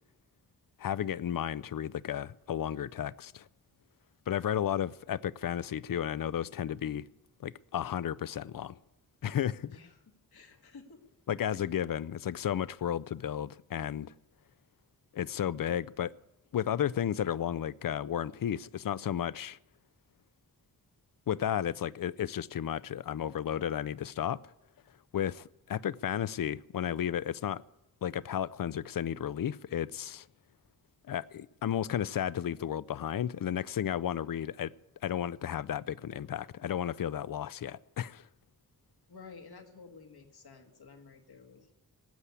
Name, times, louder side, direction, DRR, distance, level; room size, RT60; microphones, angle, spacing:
voice 1, 0.8-3.5 4.3-7.0 7.4-8.8 9.2-9.7 11.3-14.1 15.1-16.1 16.5-19.6 21.3-24.4 25.1-27.6 28.0-30.2 31.1-34.7 35.0-38.3, left 10 dB, 60° left, 0.5 m, -33 dB
voice 2, 9.7-10.0 10.3-11.0 11.5-11.6 39.1-41.7, left 4 dB, 80° left, 2.0 m, -52 dB
19.0 x 8.2 x 8.5 m
wide cardioid pair, 100°, 37 cm